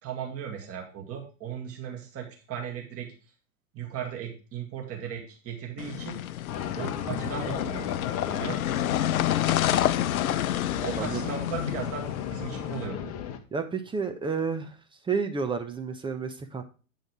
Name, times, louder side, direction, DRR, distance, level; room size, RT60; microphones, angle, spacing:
voice 1, 0.0-3.1 3.7-6.2 6.8-8.6 10.8-12.0 12.3-13.1, right 8 dB, 35° right, 0 dB, 2.2 m, -37 dB
sound 1, 5.8-12.8, left 12 dB, 75° left, 0.5 m, -29 dB
sound 2, 6.5-13.4, left 9 dB, 35° left, 0.9 m, -36 dB
voice 2, 13.5-14.8 15.0-16.6, right 5 dB, 10° right, 6 dB, 0.6 m, -30 dB
9.0 x 5.4 x 3.6 m, 0.36 s
figure-of-eight pair, 90°, 43 cm